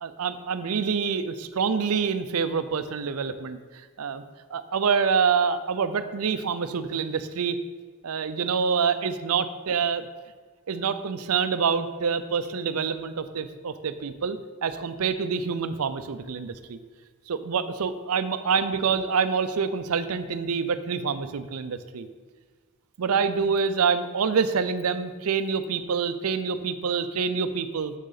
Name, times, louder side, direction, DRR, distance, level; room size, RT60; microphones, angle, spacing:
voice 1, 0.0-3.6 4.0-4.2 4.5-7.6 8.0-10.1 10.7-16.8 17.3-22.1 23.0-27.9, right 6 dB, 75° right, 12 dB, 0.5 m, -26 dB
7.3 x 6.5 x 4.0 m, 1.5 s
head